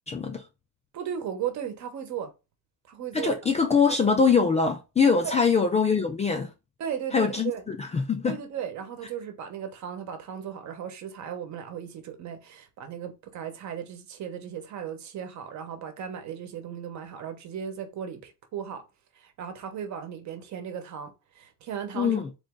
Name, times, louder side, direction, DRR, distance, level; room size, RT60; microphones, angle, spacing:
voice 1, 0.1-0.4 3.1-6.5 7.1-8.4 22.0-22.3, left 5 dB, 20° left, 0.4 m, -23 dB
voice 2, 0.9-2.3 2.9-3.7 5.2-5.4 6.8-7.6 8.2-18.8 19.2-22.2, right 8 dB, 50° right, 1.0 m, -36 dB
3.9 x 3.1 x 3.6 m
cardioid pair, 175°, 36 cm